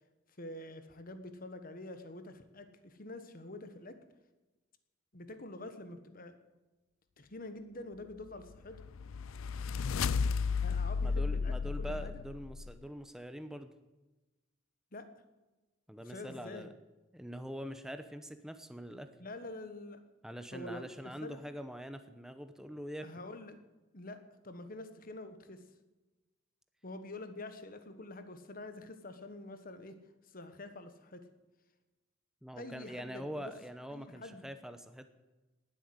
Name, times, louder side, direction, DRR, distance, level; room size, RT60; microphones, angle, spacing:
voice 1, 0.4-4.0 5.1-6.3 7.2-8.8 10.5-12.2 14.9-15.1 16.0-16.7 19.2-20.0 20.5-21.4 23.0-23.6 23.9-25.6 26.8-30.0 30.3-31.3 32.6-33.5 33.9-34.4, left 2 dB, 45° left, 9 dB, 1.5 m, -46 dB
sound 1, 8.5-12.7, left 5 dB, 85° left, 0.4 m, -33 dB
voice 2, 11.0-13.7 15.9-16.7 17.1-19.1 20.2-23.1 32.4-35.1, equal, 5° right, 9 dB, 0.9 m, -44 dB
18.5 x 8.8 x 8.0 m, 1.1 s
head